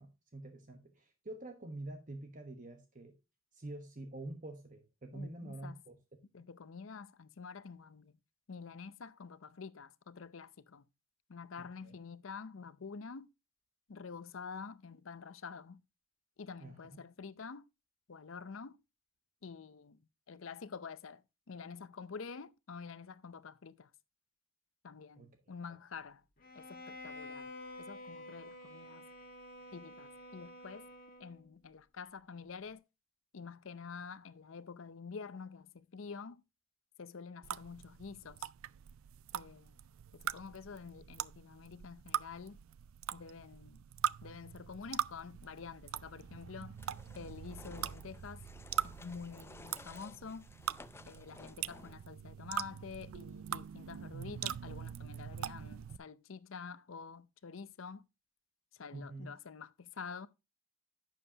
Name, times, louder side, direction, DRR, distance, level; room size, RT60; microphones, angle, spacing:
voice 1, 0.0-3.2 3.5-6.0 11.6-12.0 16.6-16.8 25.2-25.3 58.9-59.3, right 2 dB, 40° right, 1.2 m, -47 dB
voice 2, 5.1-5.8 6.3-8.1 8.5-10.9 11.3-13.3 13.9-15.8 16.4-17.6 18.1-18.8 19.4-20.0 20.3-21.2 21.5-23.9 24.8-26.2 26.5-27.5 27.8-29.1 29.7-30.9 31.2-32.8 33.3-36.4 37.0-38.5 39.3-39.7 40.1-42.6 43.1-43.8 44.2-46.8 47.2-48.4 48.8-50.5 51.1-58.0 58.7-60.3, left 5 dB, 70° left, 0.6 m, -48 dB
Bowed string instrument, 26.4-31.5, left 1 dB, 45° left, 1.7 m, -50 dB
sound 1, 37.4-56.0, right 10 dB, 75° right, 0.4 m, -42 dB
sound 2, 46.7-52.2, left 3 dB, 10° left, 0.4 m, -56 dB
11.0 x 7.5 x 2.8 m
head